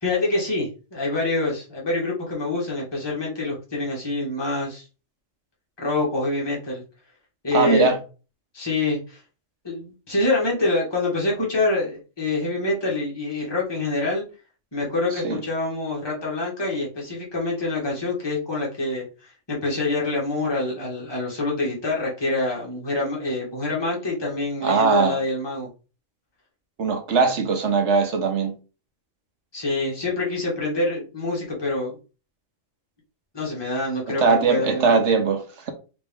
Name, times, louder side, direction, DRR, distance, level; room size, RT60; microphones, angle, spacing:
voice 1, 0.0-4.8 5.8-6.8 7.4-7.9 8.5-9.2 9.6-14.2 14.7-19.0 19.5-25.7 29.5-32.0 33.3-35.0, left 2 dB, 20° left, 1.5 m, -26 dB
voice 2, 7.5-8.0 15.2-15.4 24.6-25.2 26.8-28.5 34.1-35.7, right 4 dB, 60° right, 1.1 m, -20 dB
4.3 x 2.9 x 3.5 m
omnidirectional pair, 1.4 m